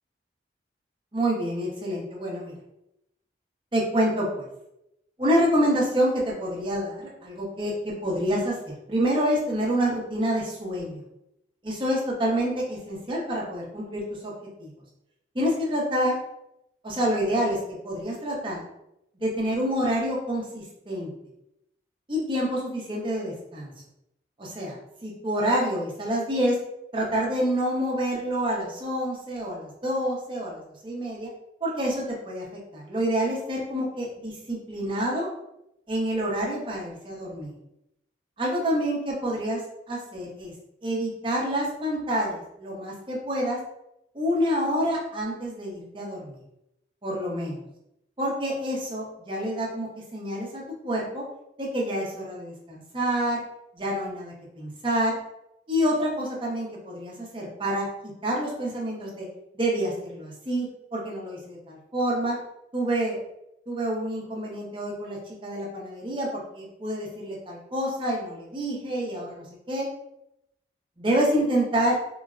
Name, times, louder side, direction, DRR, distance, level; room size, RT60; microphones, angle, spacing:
voice 1, 1.1-2.5 3.7-4.4 5.2-11.0 11.6-14.3 14.6-14.7 15.3-16.2 16.8-18.6 19.2-21.1 22.1-23.7 24.4-24.8 25.0-26.6 26.9-31.3 31.6-35.3 35.9-37.5 38.4-39.6 39.9-40.5 40.8-43.6 44.1-46.4 47.0-47.6 48.2-51.2 51.6-53.4 53.7-55.1 55.7-57.9 58.2-59.3 59.5-62.4 62.7-63.2 63.7-69.9 71.0-72.0, equal, 25° right, -3 dB, 0.7 m, -27 dB
3.8 x 2.1 x 2.4 m, 0.84 s
head